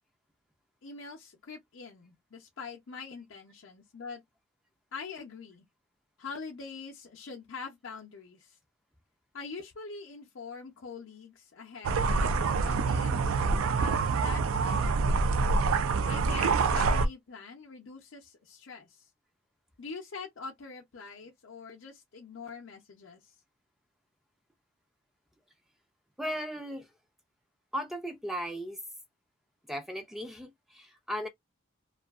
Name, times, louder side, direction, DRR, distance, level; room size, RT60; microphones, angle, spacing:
voice 1, 0.8-4.2 4.9-5.7 6.2-8.6 9.3-12.3 12.6-15.3 16.1-19.1 19.8-23.3, left 4 dB, 65° left, 0.6 m, -44 dB
sound 1, 11.8-17.1, right 4 dB, 80° right, 0.4 m, -26 dB
voice 2, 26.2-26.9 27.7-28.8 29.7-31.3, equal, ahead, 0.3 m, -36 dB
2.6 x 2.3 x 2.3 m
head